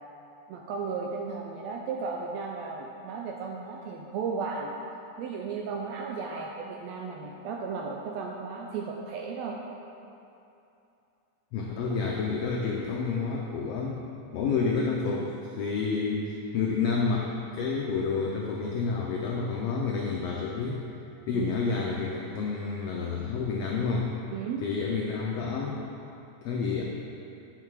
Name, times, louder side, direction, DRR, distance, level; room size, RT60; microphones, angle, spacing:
voice 1, 0.5-4.7 5.2-9.6 21.3-21.5 24.3-24.6, right 5 dB, 80° right, 0 dB, 1.6 m, -35 dB
voice 2, 11.5-14.0 14.3-20.8 21.3-24.1 24.6-25.8 26.4-26.8, left 4 dB, 85° left, -1 dB, 1.4 m, -29 dB
8.0 x 5.8 x 4.7 m, 2.7 s
omnidirectional pair, 3.5 m